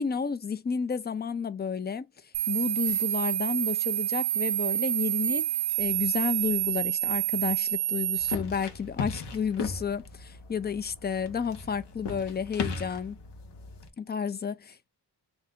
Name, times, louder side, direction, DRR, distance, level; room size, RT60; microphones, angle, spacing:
voice 1, 0.0-2.0 2.5-5.5 5.8-13.2 14.0-14.9, left 6 dB, 25° left, 0.4 m, -31 dB
sound 1, 2.3-8.3, right 13 dB, 70° right, 0.6 m, -28 dB
sound 2, 8.2-13.9, left 5 dB, 85° left, 1.0 m, -37 dB
3.3 x 2.7 x 3.6 m
wide cardioid pair, 105°, 41 cm